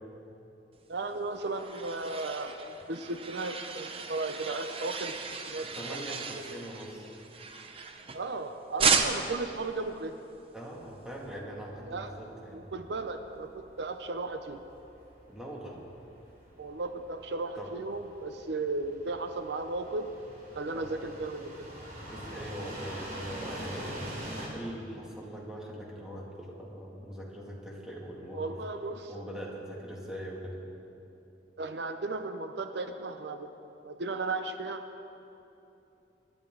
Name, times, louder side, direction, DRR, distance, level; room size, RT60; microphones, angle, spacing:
voice 1, 0.9-5.2 5.5-6.0 6.4-6.6 8.1-10.2 11.9-12.1 12.5-14.6 16.6-20.1 20.5-21.7 28.3-29.1 31.6-33.5 33.8-34.8, right 3 dB, 70° right, 7 dB, 0.7 m, -35 dB
sound 1, 1.1-8.4 8.8-9.4, right 5 dB, 30° right, 0.8 m, -33 dB
voice 2, 5.7-7.0 10.5-12.6 15.3-15.8 17.6-17.8 20.7-20.9 22.1-24.1 24.5-28.6 29.1-30.5, equal, 5° right, -4 dB, 2.3 m, -41 dB
sound 2, 10.8-24.5, right 1 dB, 50° right, 3.1 m, -45 dB
22.0 x 11.5 x 3.9 m, 3.0 s
head